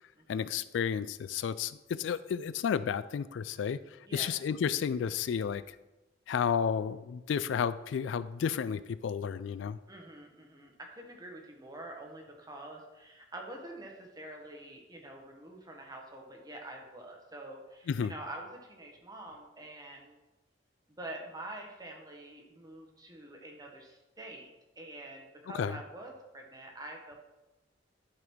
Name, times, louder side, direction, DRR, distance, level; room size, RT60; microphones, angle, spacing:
voice 1, 0.3-3.8 4.1-5.8 6.3-9.8 17.9-18.1 25.5-25.8, left 7 dB, 75° left, 15 dB, 0.3 m, -32 dB
voice 2, 9.9-20.2 21.0-27.2, right 1 dB, 20° right, 1 dB, 1.3 m, -46 dB
11.5 x 4.0 x 4.5 m, 1.0 s
head